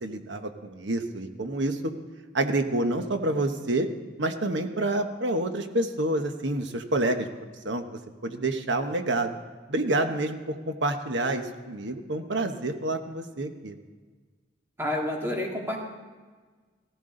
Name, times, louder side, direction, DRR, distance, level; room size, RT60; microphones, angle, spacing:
voice 1, 0.0-1.8 2.3-3.9 4.2-7.3 7.6-9.4 9.7-13.7, right 2 dB, 85° right, 7 dB, 1.2 m, -28 dB
voice 2, 14.8-15.8, left 1 dB, 15° right, -1 dB, 2.2 m, -29 dB
16.5 x 14.5 x 3.9 m, 1.4 s
head